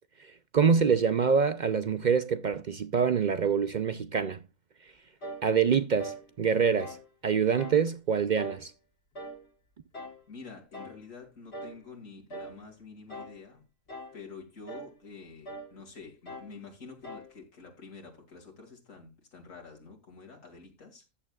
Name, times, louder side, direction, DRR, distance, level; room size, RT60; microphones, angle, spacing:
voice 1, 0.2-4.4 5.4-7.0 7.2-8.7, right 6 dB, 55° right, 0.5 m, -25 dB
sound 1, 5.2-5.5 6.0-6.3 6.8-7.1 7.6-7.9 8.4-8.7 9.1-9.5 9.9-10.2 10.7-11.0 11.5-11.8 12.3-12.6 13.1-13.4 13.9-14.2 14.7-14.9 15.5-15.7 16.3-16.6 17.0-17.3, right 1 dB, 55° left, 2.0 m, -42 dB
voice 2, 10.3-13.6 14.1-21.0, left 4 dB, 90° left, 2.7 m, -48 dB
14.5 x 8.7 x 2.3 m
omnidirectional pair, 1.3 m